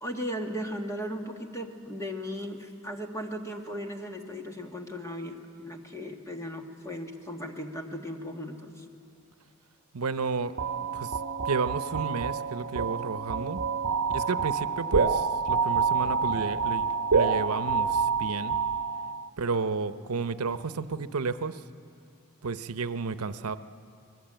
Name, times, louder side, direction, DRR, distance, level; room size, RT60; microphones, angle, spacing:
voice 1, 0.0-8.8, equal, 15° left, 3 dB, 1.9 m, -37 dB
voice 2, 9.9-10.5 10.9-11.2 11.4-13.6 14.1-18.6 19.4-21.6 22.4-23.6, right 4 dB, 90° right, 12 dB, 0.8 m, -32 dB
sound 1, 10.6-19.3, right 5 dB, 65° right, 1.0 m, -27 dB
25.5 x 20.5 x 9.0 m, 2.3 s
head